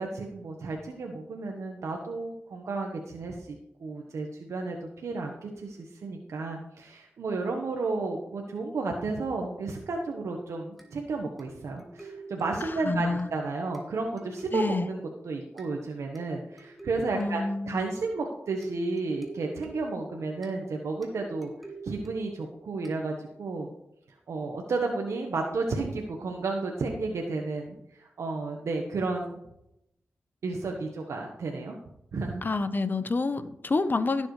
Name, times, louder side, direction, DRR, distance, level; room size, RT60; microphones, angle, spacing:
voice 1, 0.0-15.0 15.2-21.5 21.8-23.7 24.3-29.4 30.4-31.8 32.1-32.4, right 3 dB, 80° right, 1 dB, 1.3 m, -32 dB
sound 1, 10.8-23.5, right 3 dB, ahead, 2.5 m, -49 dB
voice 2, 12.6-13.3 14.5-14.9 17.1-17.9 32.4-34.3, left 3 dB, 40° left, 11 dB, 1.0 m, -28 dB
15.5 x 7.6 x 3.3 m, 0.81 s
cardioid pair, 65°, 5 cm